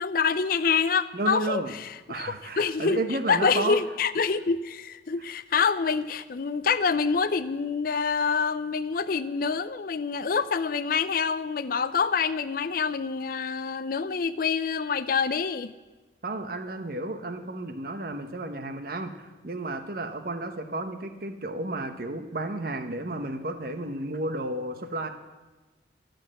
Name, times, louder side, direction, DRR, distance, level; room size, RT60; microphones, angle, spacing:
voice 1, 0.0-3.0 3.3-15.7, left 5 dB, 50° left, 14 dB, 0.5 m, -26 dB
voice 2, 1.1-1.7 2.1-3.8 16.2-25.1, right 2 dB, 55° right, 8 dB, 1.0 m, -32 dB
12.0 x 7.8 x 7.6 m, 1.2 s
head